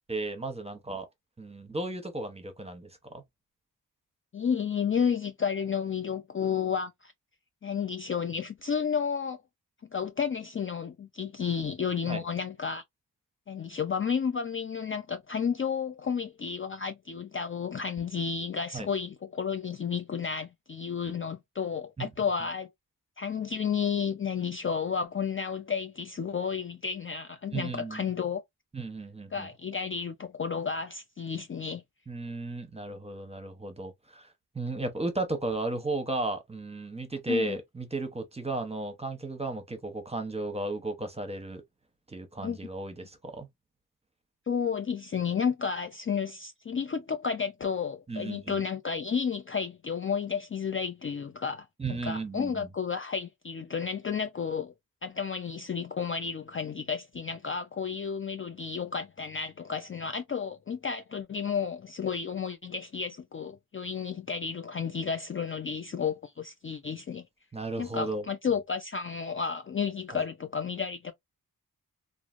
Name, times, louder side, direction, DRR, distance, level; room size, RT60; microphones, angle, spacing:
voice 1, 0.1-1.1 1.4-3.2 12.1-12.2 18.7-18.9 22.0-22.1 27.5-28.1 28.7-29.5 32.1-34.3 34.5-41.6 42.1-43.5 48.1-48.6 51.8-52.7 67.5-68.2 70.1-70.2, right 2 dB, 15° right, 0.9 m, -34 dB
voice 2, 4.3-7.1 7.6-9.4 9.9-12.8 13.5-22.7 23.2-28.4 29.3-31.8 37.3-37.6 42.4-42.6 44.5-54.7 55.0-67.2 67.8-71.1, left 6 dB, 35° left, 0.4 m, -32 dB
3.1 x 2.5 x 2.4 m
wide cardioid pair, 95°, 38 cm